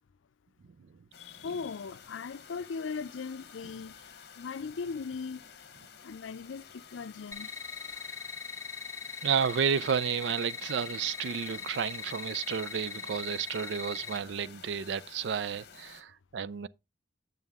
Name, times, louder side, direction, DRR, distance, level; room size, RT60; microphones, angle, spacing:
sound 1, 1.1-16.0, left 7 dB, 55° left, 1.0 m, -52 dB
voice 1, 1.2-4.0 4.4-5.4 6.0-7.5, left 5 dB, 85° left, 0.5 m, -38 dB
sound 2, 7.3-14.2, left 6 dB, 15° left, 0.5 m, -41 dB
voice 2, 9.2-16.7, right 7 dB, 65° right, 0.4 m, -31 dB
9.0 x 6.7 x 3.5 m
head